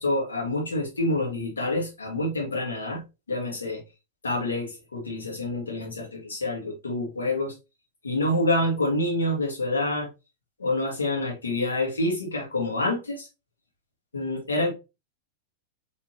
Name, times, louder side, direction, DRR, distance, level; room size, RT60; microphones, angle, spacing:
voice 1, 0.0-3.0 3.3-3.8 4.2-7.5 8.0-10.1 10.6-13.3 14.1-14.7, left 1 dB, 75° left, 1.9 m, -27 dB
4.0 x 3.4 x 2.9 m
figure-of-eight pair, 90°, 0 cm